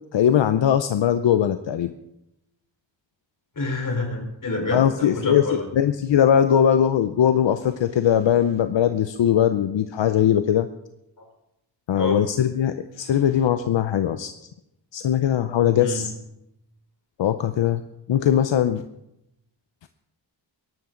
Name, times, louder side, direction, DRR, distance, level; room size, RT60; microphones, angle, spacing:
voice 1, 0.1-1.9 4.7-5.4 5.7-10.7 11.9-14.3 14.9-16.1 17.2-17.8 18.1-18.8, left 9 dB, 80° left, 10 dB, 0.7 m, -20 dB
voice 2, 3.6-5.7 11.9-12.2 15.8-16.0, left 2 dB, 45° left, 2 dB, 3.9 m, -27 dB
21.5 x 12.0 x 3.8 m, 0.85 s
wide cardioid pair, 120°, 44 cm